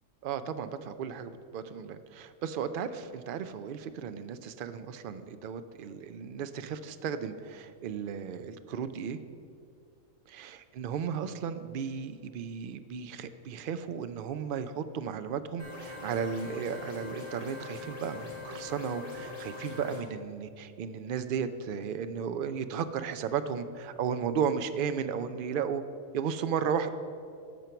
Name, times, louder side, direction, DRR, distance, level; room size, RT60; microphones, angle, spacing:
voice 1, 0.2-9.2 10.3-25.8 26.1-26.9, right 7 dB, 65° right, 10 dB, 0.5 m, -34 dB
sound 1, 15.6-20.0, left 4 dB, 55° left, 2.4 m, -42 dB
13.5 x 4.5 x 6.8 m, 2.3 s
omnidirectional pair, 1.4 m